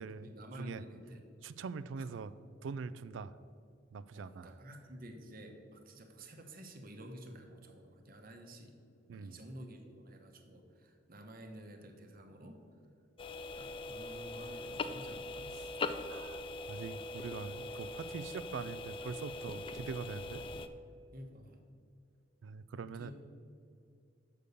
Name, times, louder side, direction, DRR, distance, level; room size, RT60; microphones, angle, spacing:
voice 1, 0.0-1.3 1.9-2.0 4.1-8.8 9.1-12.6 13.6-15.5 21.1-21.6 22.8-23.1, right 1 dB, 50° right, 4 dB, 1.0 m, -51 dB
voice 2, 1.4-2.3 2.6-3.3 3.9-4.5 9.1-9.4 16.1-20.4 22.4-23.1, right 5 dB, 80° right, 15 dB, 0.4 m, -43 dB
sound 1, 13.2-20.7, left 2 dB, 30° left, 0.3 m, -41 dB
6.6 x 5.3 x 6.9 m, 2.3 s
head